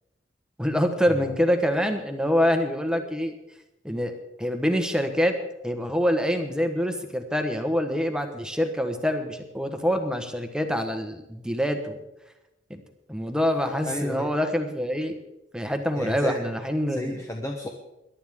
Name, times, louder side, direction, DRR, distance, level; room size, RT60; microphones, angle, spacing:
voice 1, 0.6-3.4 3.8-5.3 5.6-12.0 12.7-12.8 13.1-15.2 15.5-17.2, equal, 5° right, 6 dB, 1.2 m, -25 dB
voice 2, 13.8-14.3 15.9-16.4 16.9-17.7, left 1 dB, 15° left, 2 dB, 1.0 m, -32 dB
22.0 x 11.5 x 3.7 m, 0.94 s
head